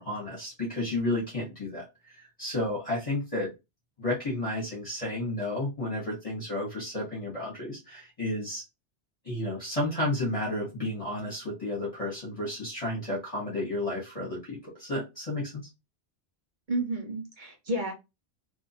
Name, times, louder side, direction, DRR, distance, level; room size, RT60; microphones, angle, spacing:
voice 1, 0.0-3.5 4.0-8.6 9.2-15.7, left 1 dB, 30° left, 1.2 m, -32 dB
voice 2, 16.7-17.9, right 1 dB, 45° right, 1.1 m, -31 dB
3.0 x 2.7 x 2.6 m
omnidirectional pair, 1.1 m